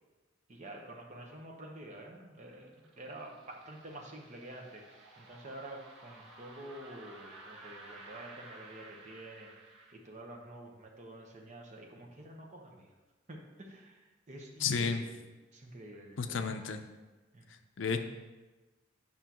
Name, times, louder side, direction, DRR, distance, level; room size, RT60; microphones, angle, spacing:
voice 1, 0.5-9.5 9.9-12.9 13.3-15.0 15.5-16.6 17.3-17.4, right 1 dB, 35° right, 0 dB, 1.0 m, -48 dB
sound 1, 2.2-9.9, right 2 dB, 80° right, 1.8 m, -54 dB
voice 2, 14.6-15.0 16.2-16.8 17.8-18.1, left 5 dB, 70° left, 7 dB, 0.5 m, -32 dB
9.2 x 5.5 x 3.0 m, 1.2 s
head